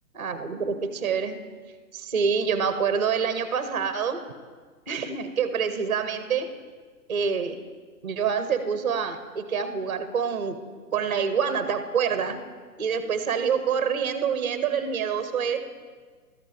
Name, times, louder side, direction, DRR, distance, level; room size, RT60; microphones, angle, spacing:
voice 1, 0.1-1.4 1.9-4.2 4.9-6.5 7.1-7.6 8.0-10.6 10.9-12.4 12.8-15.6, right 6 dB, 30° right, 10 dB, 0.5 m, -26 dB
12.5 x 8.8 x 5.0 m, 1.5 s
hypercardioid pair, 155°, 48 cm